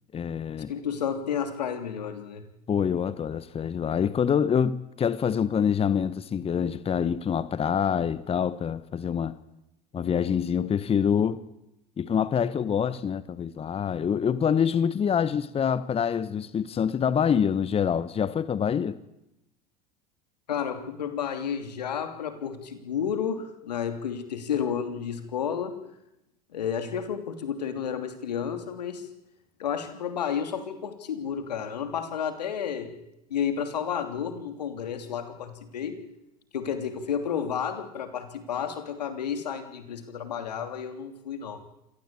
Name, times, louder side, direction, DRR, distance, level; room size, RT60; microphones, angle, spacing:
voice 1, 0.1-0.7 2.7-9.3 9.9-11.4 12.0-19.0, left 7 dB, 30° left, 1.3 m, -26 dB
voice 2, 0.7-2.5 20.5-25.8 26.5-29.1 29.6-32.9 33.3-36.0 36.5-41.6, left 8 dB, 80° left, 3.2 m, -31 dB
26.5 x 18.5 x 8.8 m
hypercardioid pair, 80°, 21 cm